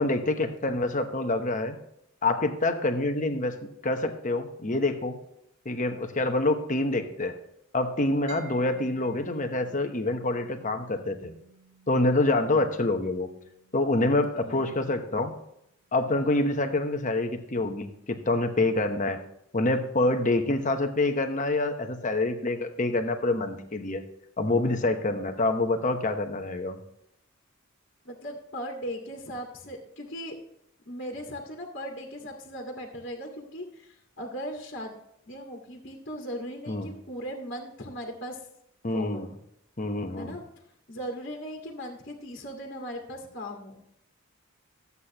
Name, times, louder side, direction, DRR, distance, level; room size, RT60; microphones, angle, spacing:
voice 1, 0.0-1.8 2.2-3.6 3.8-5.2 5.6-7.3 7.7-11.3 11.9-13.3 13.7-15.3 15.9-19.2 19.5-24.0 24.4-26.8 36.7-36.9 38.8-39.3 39.8-40.3, left 2 dB, 35° left, 7 dB, 0.9 m, -26 dB
Mallet percussion, 8.3-15.8, right 6 dB, 75° right, 1.4 m, -54 dB
voice 2, 12.3-12.7 14.4-14.6 28.0-30.4 30.8-34.9 35.3-38.4 38.8-39.3 40.2-40.4 40.9-43.8, equal, 50° left, 0 dB, 1.7 m, -38 dB
13.0 x 8.3 x 2.9 m, 0.77 s
head